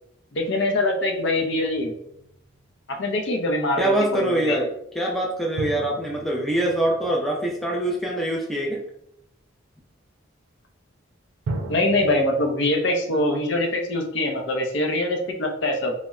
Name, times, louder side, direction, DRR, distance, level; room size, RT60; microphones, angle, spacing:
voice 1, 0.3-1.9 2.9-4.6 11.7-15.9, left 1 dB, 60° left, 3 dB, 0.5 m, -23 dB
sound 1, 1.4-2.7 5.5-8.1 11.5-12.4, right 2 dB, 85° right, 0.5 m, -36 dB
voice 2, 3.8-8.8 13.1-13.2, right 1 dB, ahead, -2 dB, 0.4 m, -24 dB
3.9 x 2.0 x 2.3 m, 0.78 s
head